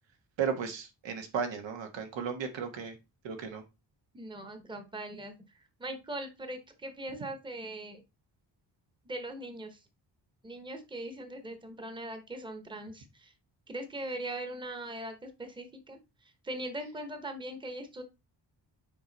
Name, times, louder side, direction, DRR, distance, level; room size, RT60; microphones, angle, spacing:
voice 1, 0.4-3.0 3.2-3.6, right 7 dB, 90° right, 6 dB, 1.5 m, -34 dB
voice 2, 4.1-8.0 9.0-9.8 10.4-13.3 13.7-18.0, right 1 dB, 10° right, 7 dB, 0.9 m, -41 dB
6.2 x 4.8 x 3.9 m, 0.26 s
wide cardioid pair, 170°, 43 cm